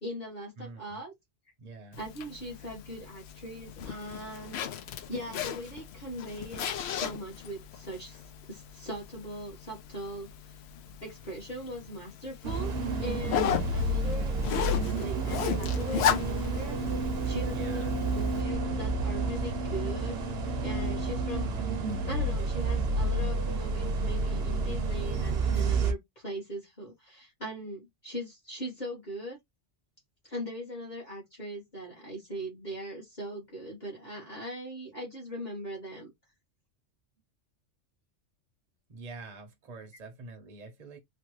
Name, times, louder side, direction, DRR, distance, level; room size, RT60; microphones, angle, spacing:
voice 1, 0.0-1.1 2.0-4.6 5.1-8.2 8.5-10.6 11.0-12.7 13.0-20.2 20.6-21.8 22.1-29.4 30.2-36.1, equal, 40° left, 1.4 m, -40 dB
voice 2, 0.6-1.0 1.6-2.0 17.4-18.0 38.9-41.0, right 3 dB, 40° right, 0.8 m, -46 dB
Zipper (clothing), 1.9-18.4, left 9 dB, 65° left, 0.7 m, -36 dB
sound 1, 12.4-25.9, right 2 dB, 60° right, 0.9 m, -30 dB
3.3 x 2.2 x 3.0 m
omnidirectional pair, 1.3 m